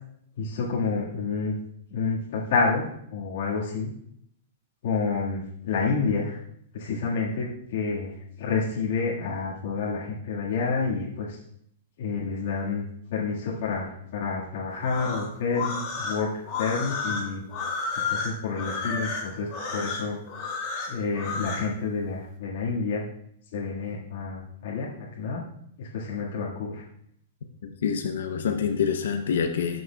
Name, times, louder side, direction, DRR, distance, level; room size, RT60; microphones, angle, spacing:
voice 1, 0.4-1.5 1.9-3.9 4.8-6.4 6.7-8.1 8.4-11.4 12.0-12.8 13.1-16.3 16.6-17.4 18.1-20.2 20.9-23.0 23.5-24.9 25.1-25.4 25.8-26.8, left 4 dB, 60° left, -6 dB, 1.7 m, -29 dB
sound 1, 14.8-21.7, left 4 dB, 35° left, 2.5 m, -31 dB
voice 2, 27.6-29.8, left 7 dB, 80° left, 5 dB, 0.7 m, -27 dB
13.0 x 6.3 x 2.3 m, 0.71 s
hypercardioid pair, 150°, 0 cm